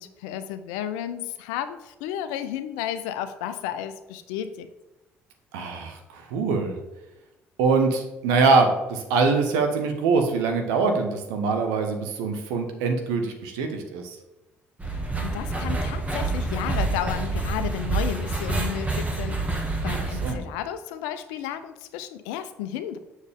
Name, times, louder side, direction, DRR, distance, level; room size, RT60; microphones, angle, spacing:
voice 1, 0.0-4.7 14.9-23.0, left 10 dB, 80° left, 11 dB, 0.5 m, -33 dB
voice 2, 5.5-6.8 7.6-14.2 19.8-20.5, right 4 dB, 80° right, 5 dB, 1.0 m, -24 dB
sound 1, 14.8-20.3, right 2 dB, 25° right, 1.7 m, -27 dB
7.3 x 6.3 x 3.6 m, 0.99 s
hypercardioid pair, 55°, 6 cm